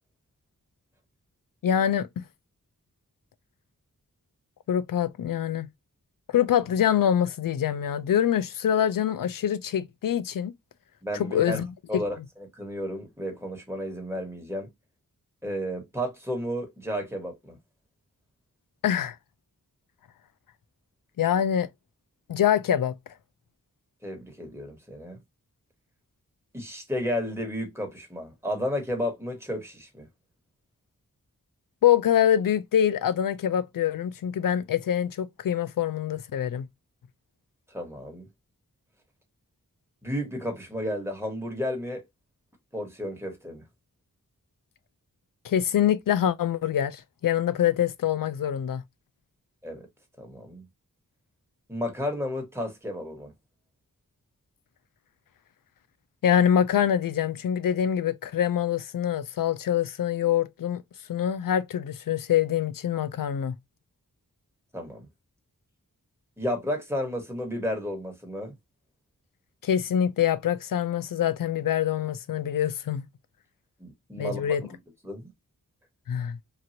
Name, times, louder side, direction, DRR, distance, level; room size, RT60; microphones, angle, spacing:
voice 1, 1.6-2.2 4.7-5.7 6.3-10.5 11.1-11.7 11.9-12.0 18.8-19.2 21.2-21.7 22.3-22.9 31.8-36.7 45.4-48.8 56.2-60.8 61.1-63.5 69.6-73.1 74.2-74.6 76.1-76.4, left 9 dB, 70° left, 0.5 m, -25 dB
voice 2, 11.0-11.6 11.9-12.2 12.6-14.7 15.4-17.6 24.0-25.2 26.5-30.1 37.7-38.3 40.0-42.0 42.7-43.6 49.6-49.8 50.2-50.6 51.7-53.3 64.7-65.1 66.4-68.5 73.8-74.5 75.0-75.3, equal, 5° right, 1.4 m, -32 dB
3.0 x 2.5 x 2.7 m
cardioid pair, 40°, 35 cm